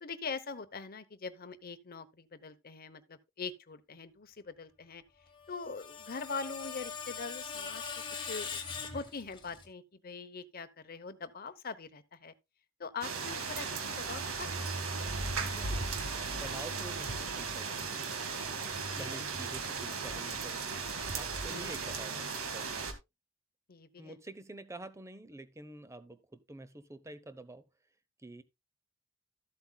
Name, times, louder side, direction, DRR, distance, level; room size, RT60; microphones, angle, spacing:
voice 1, 0.0-5.0 5.5-7.8 8.2-8.6 8.9-12.3 12.8-14.5 14.7-14.9 18.9-19.1 21.4-21.8 23.7-24.2, left 4 dB, 45° left, 0.9 m, -42 dB
Screech, 5.4-9.7, left 5 dB, 25° left, 1.9 m, -41 dB
sound 1, 13.0-22.9, right 4 dB, 80° right, 1.8 m, -36 dB
voice 2, 16.3-18.0 19.0-20.6 21.1-22.9 24.0-27.6 28.2-28.4, right 2 dB, 15° right, 0.8 m, -48 dB
14.0 x 7.9 x 2.3 m
head